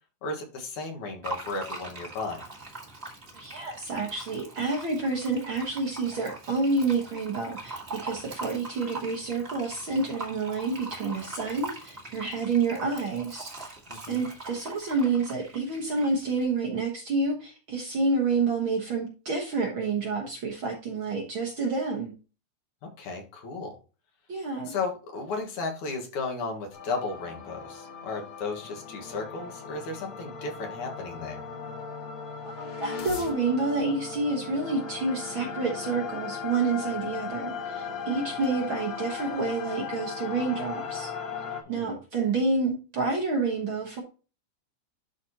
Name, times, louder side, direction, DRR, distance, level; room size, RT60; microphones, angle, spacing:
voice 1, 0.2-2.4 13.9-14.3 22.8-23.8 24.6-31.4 41.7-41.9, left 3 dB, 75° left, 1 dB, 2.9 m, -34 dB
Fill (with liquid), 1.2-16.4, right 2 dB, 30° right, 1.3 m, -42 dB
voice 2, 3.3-13.7 14.1-22.1 24.3-24.7 32.4-41.1 41.7-44.0, right 3 dB, 55° right, 0 dB, 1.5 m, -29 dB
sound 1, 26.7-41.6, left 6 dB, 55° left, 1.6 m, -37 dB
11.5 x 4.2 x 2.9 m, 0.34 s
omnidirectional pair, 3.6 m